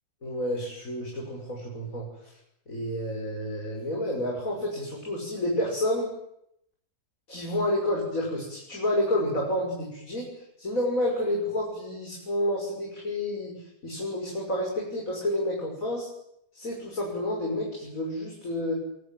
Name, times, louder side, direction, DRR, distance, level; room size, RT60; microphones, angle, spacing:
voice 1, 0.2-2.1 2.7-6.1 7.3-10.3 10.6-16.1 16.5-18.7, left 1 dB, 55° left, -2 dB, 6.7 m, -29 dB
26.0 x 23.0 x 9.4 m, 0.77 s
omnidirectional pair, 1.7 m